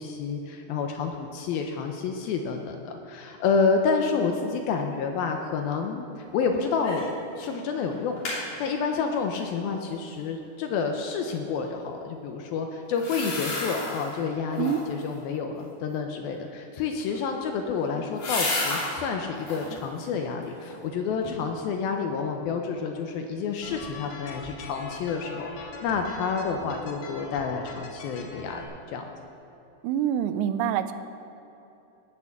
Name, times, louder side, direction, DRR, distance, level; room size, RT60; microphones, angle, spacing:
voice 1, 0.0-7.1 7.4-28.6 28.9-29.0, left 5 dB, 80° left, 4 dB, 2.3 m, -29 dB
sound 1, 6.8-7.2 7.5-7.6 7.9-8.4 12.9-14.1 14.5-15.0 17.0-18.9 19.3-19.8 20.3-20.9 21.2-21.3, left 2 dB, 40° left, 4.0 m, -32 dB
sound 2, 23.6-28.6, left 2 dB, 60° left, 3.1 m, -41 dB
voice 2, 29.8-30.9, right 10 dB, 90° right, 11 dB, 2.8 m, -26 dB
18.5 x 6.8 x 7.1 m, 2.9 s
omnidirectional pair, 4.9 m